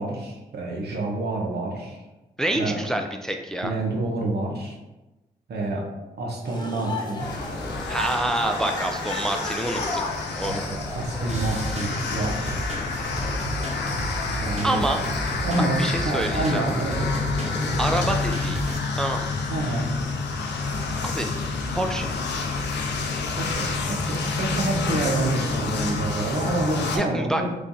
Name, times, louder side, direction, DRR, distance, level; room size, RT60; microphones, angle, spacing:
voice 1, 0.0-2.0 2.5-2.8 3.6-4.8 5.5-5.8 6.2-7.3 10.4-12.6 14.4-14.8 15.4-17.1 19.5-19.9 23.4-27.5, right 2 dB, 65° right, 0 dB, 0.9 m, -28 dB
voice 2, 2.4-3.7 7.9-10.0 10.3-10.7 14.6-15.1 15.6-16.6 17.8-18.6 19.0-19.3 21.0-21.3 21.7-22.1 27.0-27.4, right 1 dB, 5° left, 4 dB, 0.3 m, -27 dB
sound 1, 6.4-18.2, left 2 dB, 25° left, 0.9 m, -36 dB
sound 2, 7.2-27.0, left 3 dB, 75° left, 0.5 m, -29 dB
sound 3, 11.3-18.8, right 1 dB, 40° right, 0.9 m, -32 dB
3.4 x 3.2 x 2.7 m, 1.0 s
supercardioid pair, 45°, 18 cm